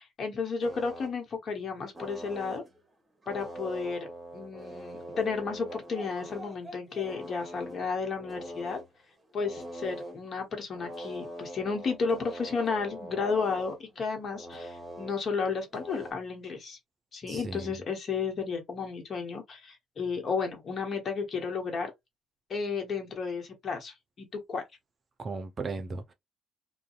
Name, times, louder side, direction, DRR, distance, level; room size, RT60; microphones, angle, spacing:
voice 1, 0.0-2.6 3.3-4.1 4.3-8.8 9.3-16.8 17.1-21.9 22.5-24.6, left 5 dB, 50° left, 1.0 m, -33 dB
sound 1, 0.6-1.1 1.9-2.8 3.2-8.9 9.3-10.2 10.7-16.1, right 1 dB, 25° right, 1.2 m, -43 dB
voice 2, 17.3-17.8 25.2-26.1, right 3 dB, 45° right, 0.6 m, -36 dB
2.6 x 2.2 x 2.4 m
hypercardioid pair, 55°, 0 cm